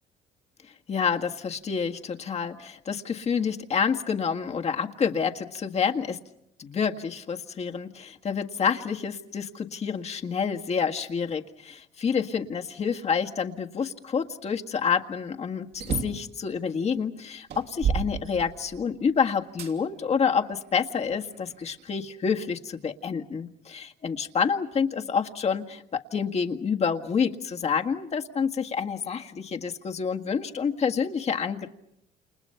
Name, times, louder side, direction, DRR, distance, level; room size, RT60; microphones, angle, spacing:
voice 1, 0.9-6.2 6.6-11.4 12.0-31.7, left 6 dB, 40° left, 5 dB, 1.7 m, -28 dB
sound 1, 15.7-16.3 17.0-17.1 17.5-18.9 19.6-19.7 20.5-21.5, right 6 dB, 70° right, 3.1 m, -31 dB
29.5 x 29.0 x 5.7 m, 0.79 s
cardioid pair, 110°, 17 cm